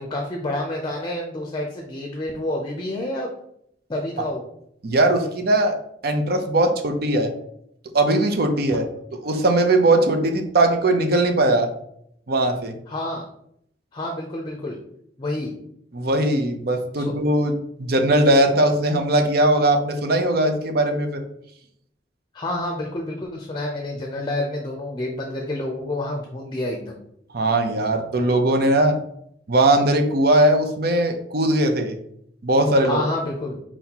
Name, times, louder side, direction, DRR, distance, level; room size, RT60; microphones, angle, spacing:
voice 1, 0.0-3.3 3.9-4.4 8.7-8.8 12.9-13.3 13.9-14.8 15.2-15.5 16.9-17.1 22.3-27.0 32.8-33.6, left 1 dB, 25° left, 1 dB, 0.6 m, -28 dB
voice 2, 4.8-5.7 6.0-7.3 7.9-8.8 9.2-11.7 12.3-12.7 15.9-21.2 27.3-29.0 29.5-32.0 32.4-33.0, right 1 dB, 60° right, 5 dB, 0.6 m, -19 dB
4.4 x 4.2 x 2.9 m, 0.72 s
head